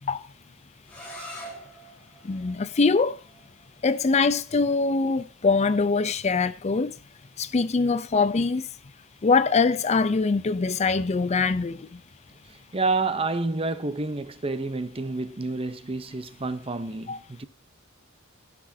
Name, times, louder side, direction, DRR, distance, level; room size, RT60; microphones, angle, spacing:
sound 1, 0.8-6.6, equal, 5° left, 4.2 m, -46 dB
voice 1, 2.2-3.2 3.8-6.9 7.4-8.7 9.2-11.9 17.1-17.2, left 4 dB, 30° left, 0.5 m, -23 dB
voice 2, 12.5-17.5, right 3 dB, 25° right, 0.7 m, -29 dB
18.0 x 6.0 x 2.7 m
head